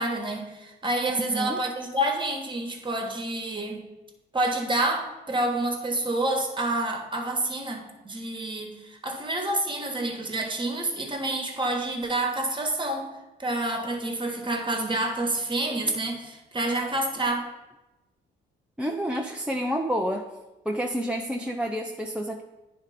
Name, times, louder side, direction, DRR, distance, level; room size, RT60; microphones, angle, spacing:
voice 1, 0.0-3.8 4.3-13.1 13.4-17.5, right 1 dB, 25° right, 3 dB, 1.4 m, -28 dB
voice 2, 1.2-1.6 18.8-20.3 20.7-22.4, equal, 5° right, 2 dB, 0.5 m, -29 dB
9.8 x 3.5 x 5.0 m, 1.0 s
cardioid pair, 90°, 20 cm